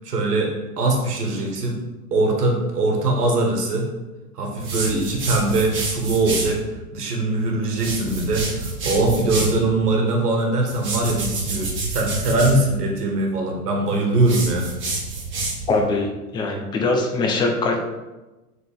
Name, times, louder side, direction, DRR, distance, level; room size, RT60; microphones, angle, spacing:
voice 1, 0.0-1.8 2.1-3.9 4.3-6.6 6.9-14.7, right 2 dB, 75° right, 0 dB, 1.7 m, -22 dB
sound 1, 4.6-6.6 7.7-9.6 10.7-12.6 14.2-15.8, right 3 dB, 25° right, 1.6 m, -28 dB
voice 2, 15.7-16.1 16.3-17.8, left 3 dB, 10° left, 1 dB, 0.5 m, -22 dB
7.3 x 4.0 x 3.6 m, 1.1 s
hypercardioid pair, 120°, 46 cm